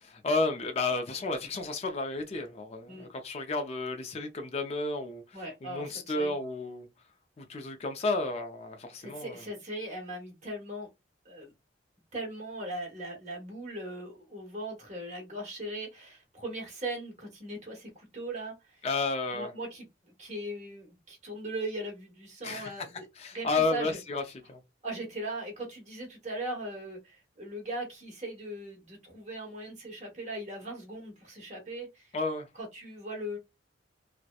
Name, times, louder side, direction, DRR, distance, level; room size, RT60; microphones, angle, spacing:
voice 1, 0.0-6.9 7.4-9.4 18.8-19.5 22.4-22.9 23.2-24.6 32.1-32.5, left 3 dB, 35° left, 0.4 m, -32 dB
voice 2, 5.3-5.8 6.1-6.3 9.0-10.9 11.2-11.5 12.1-18.8 19.3-19.8 20.2-23.1 23.3-24.0 24.8-32.1 32.5-33.4, right 1 dB, 35° right, 1.0 m, -39 dB
2.8 x 2.0 x 2.2 m
head